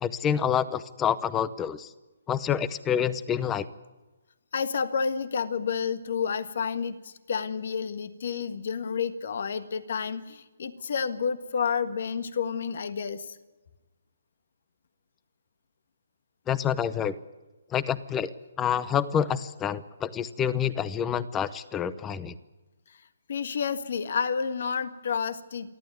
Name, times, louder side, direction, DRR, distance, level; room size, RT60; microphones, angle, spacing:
voice 1, 0.0-1.9 2.3-3.7 16.5-17.2 17.7-18.3 18.6-22.3, left 8 dB, 15° left, 17 dB, 0.8 m, -27 dB
voice 2, 4.5-13.4 22.9-23.0 23.3-25.8, left 6 dB, 60° left, 12 dB, 1.6 m, -30 dB
28.5 x 12.0 x 9.4 m, 1.1 s
hypercardioid pair, 160°, 0 cm